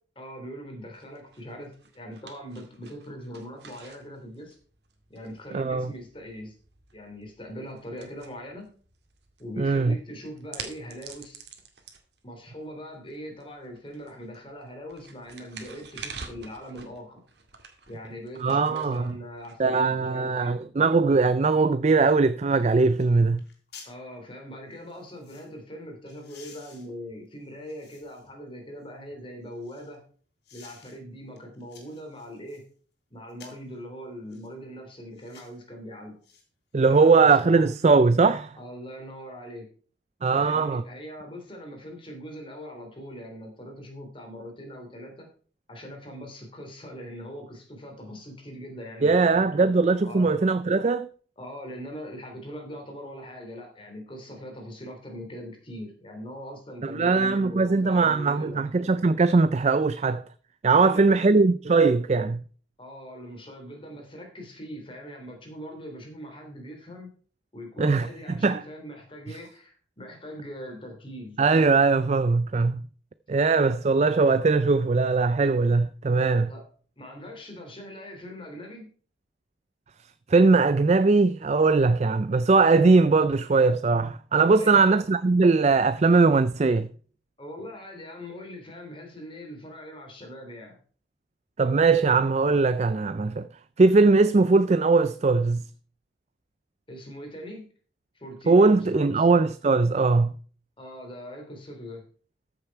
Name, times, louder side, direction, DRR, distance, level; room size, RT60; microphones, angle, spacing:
voice 1, 0.2-4.5 5.1-6.5 6.9-8.8 9.4-11.5 12.2-17.2 17.9-20.6 23.8-30.0 30.5-32.7 33.1-36.2 36.9-37.7 38.6-39.7 40.3-45.3 45.7-49.7 50.0-50.3 51.4-58.6 60.7-61.3 62.8-67.1 67.5-71.4 76.5-76.6 77.0-78.9 84.5-85.0 87.4-90.8 96.9-97.7 98.1-99.3 100.8-102.0, equal, 25° left, 3.0 m, -41 dB
sound 1, 0.9-20.2, right 5 dB, 55° right, 2.1 m, -48 dB
voice 2, 5.5-5.9 9.6-9.9 18.4-19.1 19.6-23.4 36.7-38.5 40.2-40.8 49.0-51.1 56.8-60.2 60.6-62.4 67.8-68.6 71.4-72.8 73.3-76.5 80.3-86.9 91.6-93.5 93.8-95.6 98.5-100.3, right 4 dB, 35° right, 0.4 m, -20 dB
sound 2, 22.5-22.6 23.0-23.1 23.4-24.0 24.7-25.5 26.1-28.3 28.8-30.0 30.4-31.0 31.4-32.7 33.3-33.7 34.3-34.5 35.1-35.6 36.2-36.4 36.8-37.6 38.0-38.1, left 5 dB, 60° left, 3.3 m, -53 dB
14.0 x 6.8 x 4.6 m
head